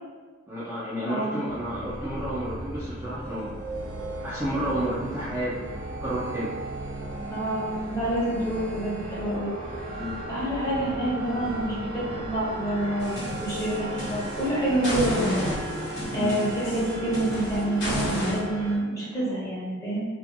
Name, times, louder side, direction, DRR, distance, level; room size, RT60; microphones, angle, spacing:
voice 1, 0.5-3.5 4.2-6.5 9.9-10.2 16.1-16.3, right 1 dB, 10° right, -11 dB, 0.4 m, -31 dB
voice 2, 1.0-1.4 7.3-9.5 10.3-15.5 16.1-20.1, right 1 dB, 15° left, -8 dB, 0.9 m, -28 dB
sound 1, 1.5-18.8, right 1 dB, 90° right, 0.5 m, -36 dB
sound 2, 13.0-14.4 14.8-18.4, left 1 dB, 55° left, 0.9 m, -31 dB
2.6 x 2.4 x 2.5 m, 1.5 s
head